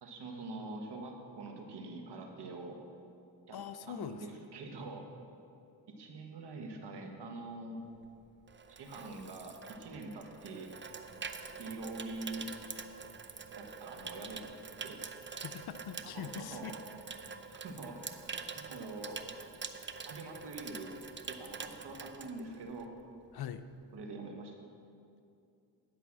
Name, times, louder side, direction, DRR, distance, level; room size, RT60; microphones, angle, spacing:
voice 1, 0.0-2.8 3.5-3.6 3.9-5.1 5.9-7.8 8.7-10.7 11.6-12.5 13.5-14.5 14.8-15.0 16.1-16.7 17.5-18.0 18.6-19.2 20.1-20.9 21.3-22.9 23.9-24.5, right 3 dB, 65° right, 3 dB, 1.6 m, -44 dB
voice 2, 3.5-4.4 15.4-16.7 23.3-23.6, left 8 dB, 55° left, 11 dB, 0.7 m, -42 dB
Water tap faucet / Sink (filling or washing), 7.9-23.0 23.3-23.6, right 5 dB, 25° right, 0.6 m, -46 dB
11.0 x 5.7 x 7.5 m, 2.6 s
supercardioid pair, 65°, 44 cm